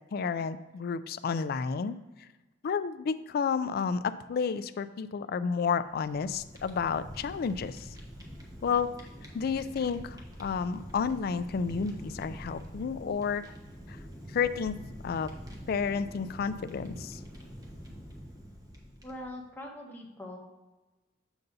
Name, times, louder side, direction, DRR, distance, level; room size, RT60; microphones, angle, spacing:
voice 1, 0.1-2.0 2.6-7.9 8.6-8.9 9.3-13.5 13.9-14.0 14.3-15.3 15.7-17.2, left 6 dB, 55° left, 12 dB, 0.3 m, -31 dB
Fire, 5.9-19.4, equal, 20° right, 1.1 m, -45 dB
voice 2, 19.0-20.4, left 1 dB, 10° left, -2 dB, 1.2 m, -42 dB
7.1 x 6.6 x 2.7 m, 1.1 s
head